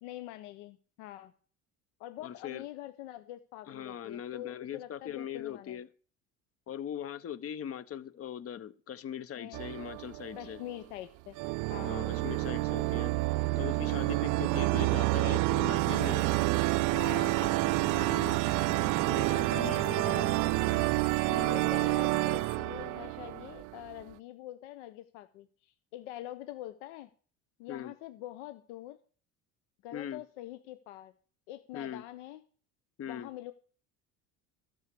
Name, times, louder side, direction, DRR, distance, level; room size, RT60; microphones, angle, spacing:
voice 1, 0.0-1.3 2.0-5.8 9.4-9.6 10.4-11.4 11.7-12.2 16.9-17.4 19.6-20.4 21.5-27.1 27.6-29.0 29.8-31.1 31.5-32.4 33.1-33.5, left 14 dB, 85° left, 11 dB, 0.8 m, -44 dB
voice 2, 2.2-2.6 3.7-5.9 6.7-10.6 11.8-13.1 13.6-16.3 17.9-18.4 19.1-20.3 21.3-21.6 27.7-27.9 29.9-30.2 31.7-32.0 33.0-33.3, left 9 dB, 40° left, 17 dB, 0.9 m, -40 dB
sound 1, 9.5-10.7 11.4-24.0, right 23 dB, 60° right, 0.5 m, -29 dB
Engine / Mechanisms, 12.0-21.0, equal, ahead, 0.4 m, -47 dB
sound 2, 15.7-22.6, left 3 dB, 15° left, 1.0 m, -49 dB
12.0 x 6.3 x 6.8 m, 0.42 s
supercardioid pair, 90°, 35 cm